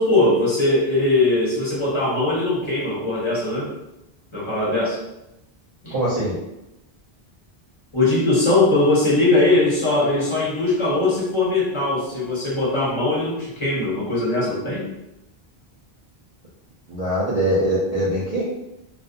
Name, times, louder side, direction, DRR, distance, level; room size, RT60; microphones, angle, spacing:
voice 1, 0.0-3.7 4.3-5.0 5.8-5.9 7.9-14.9, left 2 dB, 35° left, -6 dB, 0.6 m, -20 dB
voice 2, 5.9-6.4 16.9-18.4, right 1 dB, 50° right, -8 dB, 0.5 m, -22 dB
2.5 x 2.1 x 2.5 m, 0.89 s
omnidirectional pair, 1.0 m